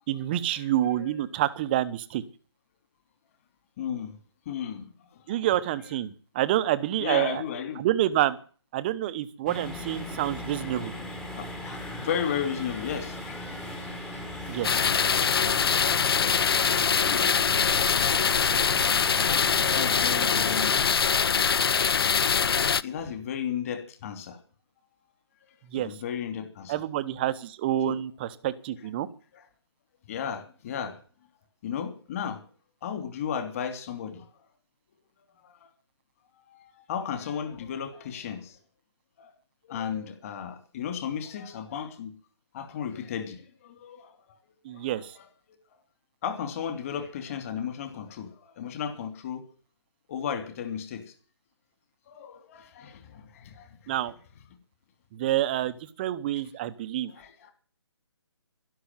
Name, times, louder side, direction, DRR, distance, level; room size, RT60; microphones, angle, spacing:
voice 1, 0.1-2.2 5.3-7.4 7.8-8.4 8.7-10.9 14.5-14.8 25.7-26.0 26.7-29.1 44.6-45.2 53.9-54.1 55.1-57.1, right 13 dB, 20° right, 14 dB, 0.9 m, -28 dB
voice 2, 3.8-4.1 4.4-4.9 7.0-7.8 10.0-10.2 10.7-10.8 11.3-13.4 17.1-17.3 17.9-18.5 19.6-20.8 21.5-21.6 22.8-24.4 25.8-26.7 27.8-28.0 29.3-29.4 30.1-31.0 31.6-32.4 32.8-34.2 35.4-35.5 36.5-38.6 39.2-39.3 39.6-42.1 42.5-44.4 44.7-44.9 46.2-49.4 50.1-51.0 52.1-53.7 57.1-57.5, left 8 dB, 30° left, 9 dB, 3.0 m, -34 dB
sound 1, 9.5-20.9, left 1 dB, 5° left, 1.4 m, -38 dB
sound 2, 11.6-15.5, left 3 dB, 85° left, 5.4 m, -50 dB
sound 3, 14.6-22.8, left 6 dB, 55° left, 0.7 m, -23 dB
12.5 x 12.0 x 9.2 m, 0.42 s
hypercardioid pair, 160°, 15 cm